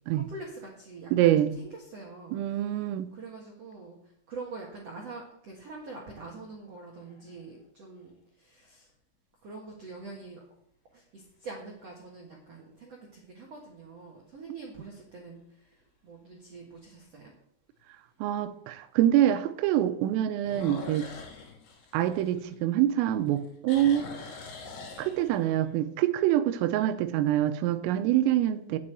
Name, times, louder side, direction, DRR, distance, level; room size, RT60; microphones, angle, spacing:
voice 1, 0.1-8.9 9.4-10.4 10.9-17.3, right 3 dB, 65° right, -1 dB, 1.6 m, -45 dB
voice 2, 1.1-1.5 2.3-3.1 18.2-21.1 21.9-24.1 25.0-28.8, right 12 dB, 90° right, 10 dB, 3.4 m, -25 dB
sound 1, 6.8-7.4 8.1-8.2 13.4-13.9 14.4-14.5 15.0-15.1 15.4-15.5 17.0-17.1 20.4-22.9 23.3-25.6, left 4 dB, 65° left, 4.6 m, -44 dB
8.6 x 8.3 x 9.0 m, 0.71 s
omnidirectional pair, 5.8 m